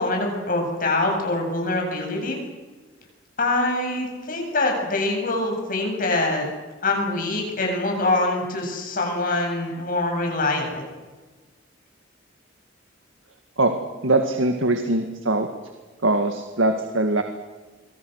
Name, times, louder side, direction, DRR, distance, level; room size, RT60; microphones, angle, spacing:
voice 1, 0.0-2.4 3.4-6.5 6.8-10.8, left 2 dB, 45° left, 2 dB, 8.0 m, -24 dB
voice 2, 14.0-15.5 16.0-17.2, right 2 dB, 85° right, 5 dB, 2.0 m, -21 dB
27.5 x 24.5 x 6.6 m, 1.3 s
head